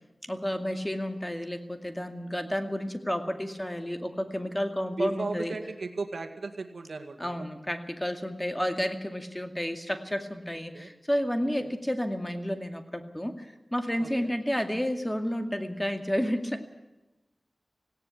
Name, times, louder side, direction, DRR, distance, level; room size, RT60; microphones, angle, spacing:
voice 1, 0.3-5.6 7.2-16.6, equal, 10° left, 6 dB, 2.3 m, -31 dB
voice 2, 5.0-7.3 10.7-10.9 11.6-11.7 14.0-14.3, right 3 dB, 85° right, 5 dB, 2.0 m, -35 dB
18.5 x 17.0 x 8.4 m, 1.0 s
wide cardioid pair, 60°, 0 cm